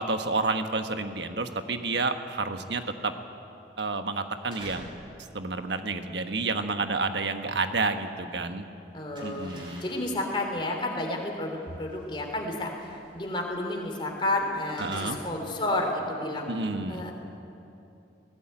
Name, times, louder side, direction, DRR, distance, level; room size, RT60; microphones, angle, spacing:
voice 1, 0.0-3.1 3.8-4.9 5.3-8.6 9.2-9.8 14.8-15.2 16.5-17.0, right 3 dB, 70° right, 7 dB, 1.3 m, -30 dB
sound 1, 4.3-5.1 5.4-8.3 8.6-15.8, equal, 30° right, 5.4 m, -49 dB
voice 2, 8.9-9.5 9.8-12.9 13.1-16.5 16.9-17.1, left 1 dB, 25° left, 1 dB, 3.2 m, -31 dB
18.5 x 18.0 x 8.9 m, 2.7 s
head